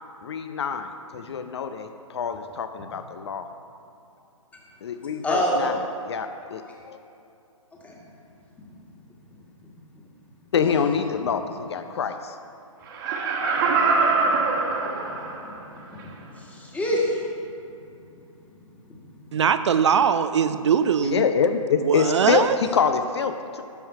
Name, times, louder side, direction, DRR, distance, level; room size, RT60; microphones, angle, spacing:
voice 1, 0.2-3.5 4.8-5.8 6.1-7.0 10.5-12.4 21.0-23.6, left 6 dB, 50° left, 9 dB, 0.5 m, -26 dB
voice 2, 5.2-5.7 7.8-8.0 10.6-10.7 13.7-13.8 15.4-17.2, equal, 10° left, -3 dB, 1.6 m, -27 dB
Laughter, 12.9-15.5 16.0-16.1, right 4 dB, 40° right, 1.5 m, -23 dB
voice 3, 19.3-21.2 21.8-22.6, right 7 dB, 55° right, 11 dB, 0.4 m, -21 dB
12.5 x 5.6 x 5.6 m, 2.7 s
figure-of-eight pair, 130°, 18 cm